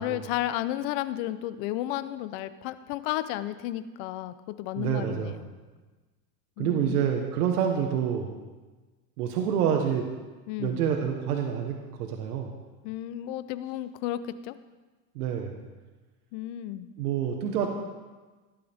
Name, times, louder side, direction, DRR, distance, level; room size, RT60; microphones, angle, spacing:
voice 1, 0.0-5.5 6.6-7.0 10.5-10.9 12.8-14.5 16.3-16.9, left 13 dB, 60° left, 13 dB, 0.9 m, -33 dB
voice 2, 4.8-5.4 6.6-8.4 9.2-10.1 10.6-12.5 15.1-15.6 17.0-17.7, right 8 dB, 90° right, 3 dB, 1.5 m, -27 dB
16.5 x 11.5 x 3.6 m, 1.3 s
supercardioid pair, 135°, 44 cm